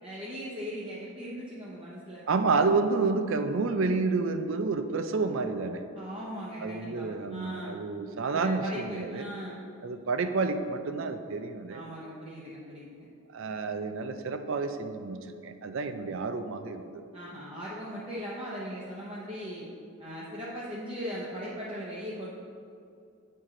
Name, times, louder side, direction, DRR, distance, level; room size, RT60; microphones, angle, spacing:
voice 1, 0.0-2.3 6.0-7.8 8.3-9.7 11.7-12.9 17.1-19.6 20.0-22.3, equal, 25° right, -8 dB, 0.8 m, -39 dB
voice 2, 2.3-5.8 6.6-9.3 9.8-11.8 13.3-16.8, right 4 dB, 60° right, 8 dB, 0.4 m, -29 dB
8.2 x 4.6 x 3.7 m, 2.4 s
head